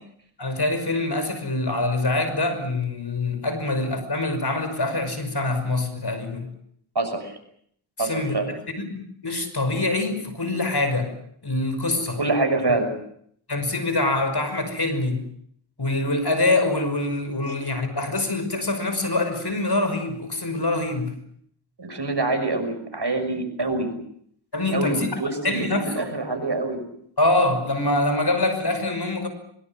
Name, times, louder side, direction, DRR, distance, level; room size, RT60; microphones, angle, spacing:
voice 1, 0.4-6.5 8.0-8.4 9.2-11.1 11.4-12.2 13.5-15.2 15.8-21.1 24.5-25.1 25.4-26.1 27.2-29.3, left 2 dB, 50° left, 9 dB, 5.8 m, -24 dB
voice 2, 6.9-7.3 8.0-8.5 12.2-12.9 17.5-17.6 21.8-23.9 24.7-26.8, right 2 dB, 55° right, 6 dB, 6.3 m, -25 dB
23.0 x 23.0 x 7.6 m, 0.67 s
wide cardioid pair, 50°, 50 cm